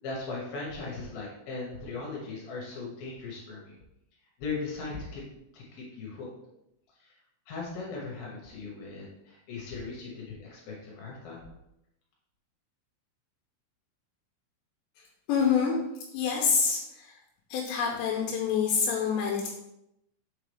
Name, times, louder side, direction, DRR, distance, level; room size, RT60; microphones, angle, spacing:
voice 1, 0.0-3.7 4.4-5.2 5.5-6.3 7.0-7.1 7.5-11.4, left 4 dB, 70° left, -3 dB, 2.3 m, -38 dB
voice 2, 15.3-15.8 16.1-17.2 17.5-19.5, left 6 dB, 85° left, 0 dB, 2.5 m, -26 dB
6.8 x 4.8 x 3.4 m, 0.85 s
omnidirectional pair, 5.9 m